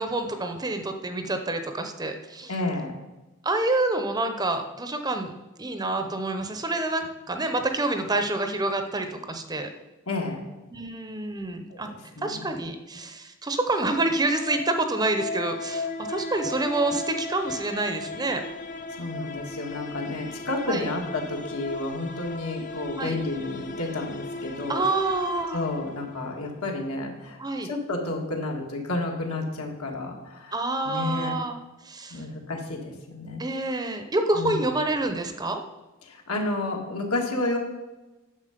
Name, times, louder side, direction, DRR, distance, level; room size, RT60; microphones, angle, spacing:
voice 1, 0.0-2.5 3.4-5.3 5.6-9.7 10.7-11.9 12.2-18.4 20.7-20.9 23.0-23.2 24.7-25.6 27.4-27.7 30.5-31.6 31.9-32.2 33.4-35.6, right 2 dB, 20° right, 7 dB, 0.7 m, -27 dB
voice 2, 2.5-3.0 10.1-10.4 11.7-12.5 19.0-24.8 25.5-30.6 30.8-31.4 32.1-33.4 34.3-34.7 36.0-37.6, left 2 dB, 75° left, 1 dB, 1.9 m, -31 dB
sound 1, 13.5-26.5, left 2 dB, 35° left, 0.6 m, -37 dB
9.7 x 7.1 x 5.1 m, 1.1 s
head